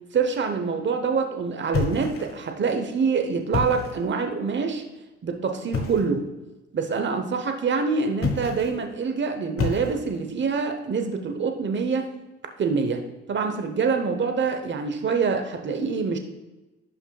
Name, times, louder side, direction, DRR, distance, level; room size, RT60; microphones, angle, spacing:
voice 1, 0.1-4.8 5.2-6.2 6.7-12.1 12.6-13.0 13.3-16.2, right 5 dB, 40° right, 5 dB, 1.0 m, -25 dB
sound 1, 1.7-2.5 3.4-4.1 5.7-6.2 8.1-8.8 9.6-10.3, left 4 dB, 45° left, 1.3 m, -29 dB
11.5 x 5.5 x 2.3 m, 1.1 s
cardioid pair, 90°, 30 cm